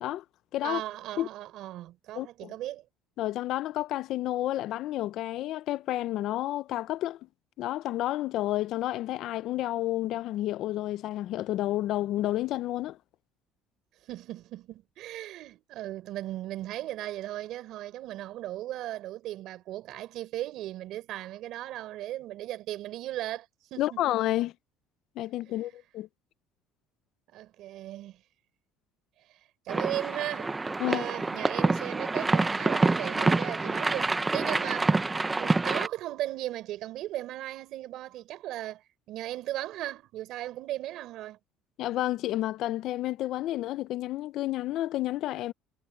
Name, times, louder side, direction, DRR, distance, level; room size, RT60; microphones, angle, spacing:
voice 1, 0.6-2.8 14.1-24.0 25.4-25.7 27.3-28.2 29.7-30.6 30.8-41.4, right 14 dB, 60° right, 4.3 m, -37 dB
voice 2, 2.2-2.5 3.2-7.2 7.6-13.0 23.8-24.5 25.2-26.1 30.8-31.0 41.8-45.5, left 14 dB, 55° left, 0.6 m, -30 dB
sound 1, 29.7-35.9, right 3 dB, 15° right, 0.7 m, -27 dB
cardioid pair, 140°, 0 cm